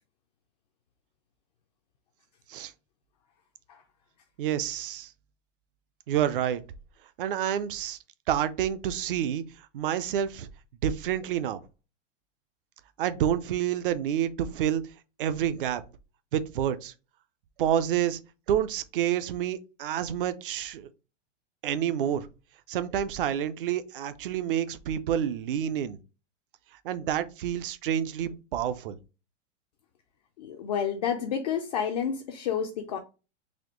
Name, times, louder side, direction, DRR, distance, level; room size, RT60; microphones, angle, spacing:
voice 1, 4.4-5.1 6.1-6.6 7.2-8.0 8.3-9.4 9.7-10.5 10.8-11.6 13.0-14.8 15.2-15.8 16.3-16.9 17.6-18.2 18.5-20.9 21.6-22.3 22.7-26.0 26.8-29.0, right 10 dB, 50° right, 0.5 m, -28 dB
voice 2, 30.4-33.0, left 8 dB, 35° left, 0.4 m, -30 dB
4.2 x 2.6 x 2.9 m
hypercardioid pair, 155°, 37 cm